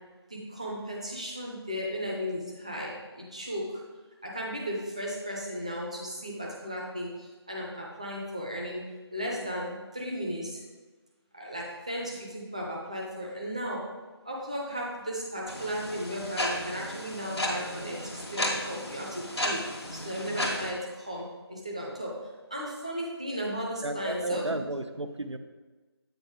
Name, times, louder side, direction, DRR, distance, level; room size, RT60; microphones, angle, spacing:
voice 1, 0.5-2.9 3.3-3.6 4.3-7.1 7.5-8.8 9.1-10.5 11.3-13.8 14.3-19.6 19.9-20.8 21.1-21.2 21.5-22.1 22.5-24.4, equal, 15° right, -3 dB, 0.6 m, -35 dB
sound 1, 15.5-20.7, left 1 dB, 65° left, 1.4 m, -34 dB
voice 2, 23.8-25.4, right 2 dB, 90° right, 8 dB, 0.6 m, -33 dB
8.0 x 4.8 x 3.6 m, 1.3 s
figure-of-eight pair, 165°, 14 cm